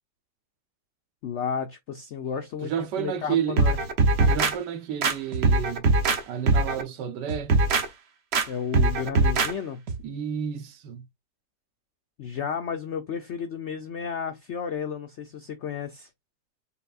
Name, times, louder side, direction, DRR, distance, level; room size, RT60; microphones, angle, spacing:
voice 1, 1.2-3.8 8.5-9.8 12.2-16.1, left 7 dB, 75° left, 0.6 m, -32 dB
voice 2, 2.6-3.6 4.2-5.9 6.3-7.5 10.0-11.1, right 8 dB, 75° right, 1.4 m, -31 dB
sound 1, 3.6-4.5 5.0-6.2 6.5-6.8 7.3-7.8 8.3-8.5 8.7-9.5 9.9-10.0, right 3 dB, 55° right, 0.7 m, -21 dB
5.8 x 3.5 x 2.4 m
omnidirectional pair, 1.9 m